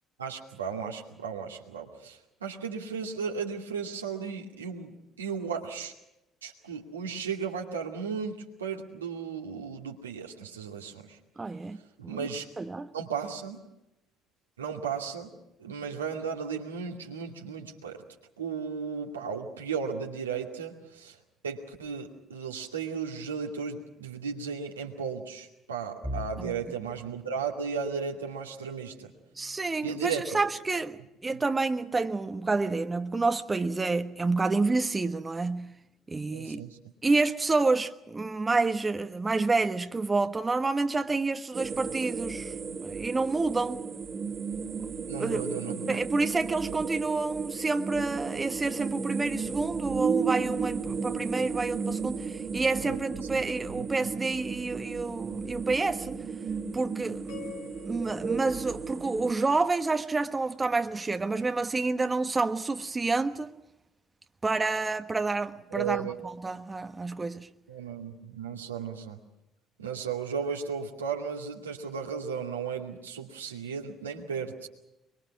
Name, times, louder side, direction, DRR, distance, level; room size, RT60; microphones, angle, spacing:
voice 1, 0.2-5.9 6.4-11.2 12.0-12.5 12.9-13.6 14.6-15.3 15.6-18.0 18.4-21.2 21.4-29.1 29.8-30.4 31.3-31.4 36.3-36.8 45.1-46.0 52.8-53.0 53.8-53.9 65.7-66.2 67.7-69.2 69.8-74.7, right 6 dB, 80° right, 2.4 m, -35 dB
voice 2, 11.4-12.3 12.6-12.9 26.4-26.5 29.4-35.7 36.1-36.6 37.0-42.5 42.8-43.8 45.2-45.6 45.9-56.2 56.7-57.5 57.9-63.5 64.4-67.5, right 3 dB, 20° right, 1.3 m, -29 dB
sound 1, 26.0-37.9 38.3-38.6 38.9-39.1 40.0-40.4, equal, ahead, 1.8 m, -48 dB
sound 2, 41.5-59.3, right 5 dB, 40° right, 2.3 m, -34 dB
sound 3, 57.3-59.7, left 9 dB, 70° left, 2.9 m, -48 dB
24.0 x 24.0 x 6.1 m
figure-of-eight pair, 55°, 0 cm